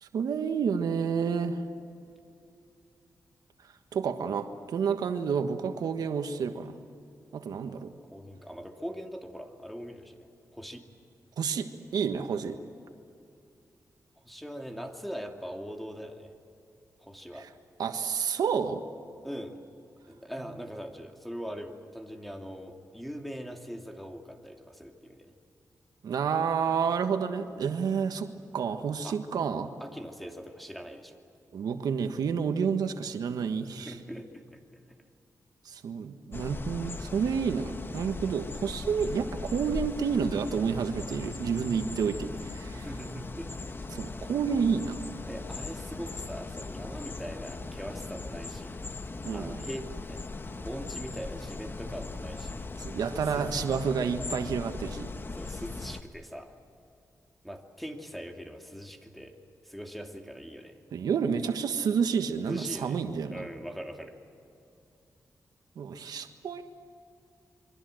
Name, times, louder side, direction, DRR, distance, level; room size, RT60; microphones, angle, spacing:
voice 1, 0.0-1.6 3.9-6.8 7.3-7.9 11.4-12.6 17.4-17.5 17.8-18.8 26.0-28.3 28.5-29.7 31.5-34.0 35.6-42.9 43.9-45.0 49.2-49.6 52.8-55.1 60.9-63.4 65.8-66.6, right 6 dB, 85° right, 7 dB, 1.4 m, -30 dB
voice 2, 8.1-10.3 10.5-10.8 14.2-16.3 17.0-17.5 19.2-19.6 20.1-25.3 29.0-29.2 29.8-31.2 33.7-34.8 42.7-43.8 45.2-48.8 49.3-50.3 50.6-52.6 53.0-53.7 54.4-54.6 55.3-56.5 57.4-59.4 59.6-60.8 62.5-64.2, equal, ahead, 3 dB, 2.6 m, -41 dB
sound 1, 36.3-56.0, left 3 dB, 35° left, 1.2 m, -39 dB
28.0 x 23.5 x 7.8 m, 2.6 s
cardioid pair, 95°, 7 cm